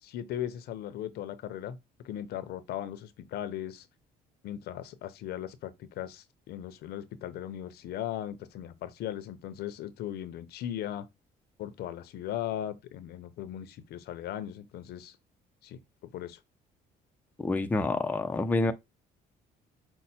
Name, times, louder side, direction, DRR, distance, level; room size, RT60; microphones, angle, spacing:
voice 1, 0.0-3.9 4.4-11.1 11.6-15.2 15.6-16.4, left 11 dB, 70° left, 0.6 m, -38 dB
voice 2, 17.4-18.7, left 2 dB, 10° left, 0.4 m, -27 dB
5.5 x 2.1 x 4.2 m
cardioid pair, 110°, 17 cm